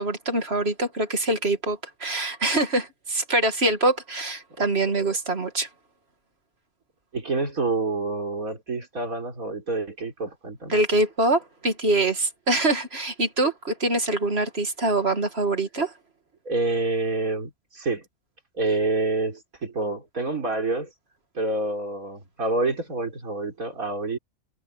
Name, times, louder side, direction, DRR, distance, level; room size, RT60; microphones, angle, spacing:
voice 1, 0.0-5.7 10.7-15.9, right 2 dB, 45° right, 2.4 m, -24 dB
voice 2, 7.1-10.8 16.4-18.0 18.6-20.9 21.3-24.2, right 2 dB, 80° right, 4.5 m, -27 dB
omnidirectional pair, 1.5 m